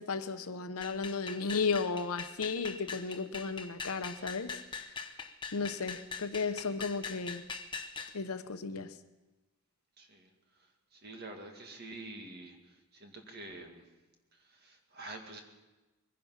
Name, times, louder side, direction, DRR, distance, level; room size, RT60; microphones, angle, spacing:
voice 1, 0.0-4.5 5.5-7.4 8.1-8.9, left 4 dB, 85° left, 0.9 m, -34 dB
sound 1, 0.8-8.2, left 5 dB, 20° left, 0.8 m, -42 dB
voice 2, 10.0-10.3 10.6-10.7 10.9-13.8 14.4-15.4, right 2 dB, 45° right, 2.1 m, -47 dB
22.5 x 10.5 x 5.8 m
head